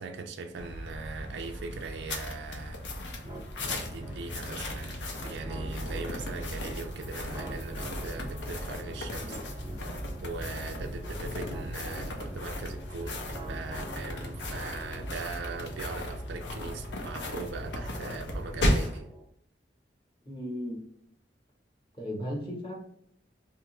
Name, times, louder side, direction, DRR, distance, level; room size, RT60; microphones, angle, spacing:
voice 1, 0.0-2.9 3.7-9.4 10.2-19.1, right 4 dB, 75° right, 0.4 m, -40 dB
sound 1, 0.6-19.0, left 1 dB, 85° left, 0.6 m, -36 dB
sound 2, 3.2-19.2, right 1 dB, 25° right, 0.5 m, -46 dB
voice 2, 20.3-20.8 21.9-22.8, equal, 30° left, 0.9 m, -35 dB
2.8 x 2.4 x 3.0 m
head